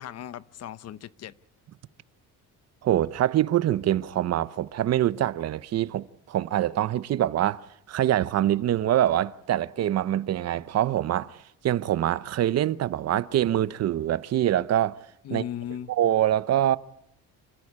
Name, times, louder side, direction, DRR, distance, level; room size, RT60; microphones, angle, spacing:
voice 1, 0.0-1.3 15.2-16.0, left 10 dB, 50° left, 0.8 m, -37 dB
voice 2, 2.8-15.0 15.3-15.4 15.9-16.8, right 12 dB, 50° right, 0.8 m, -25 dB
27.5 x 14.5 x 8.7 m
cardioid pair, 135°, 33 cm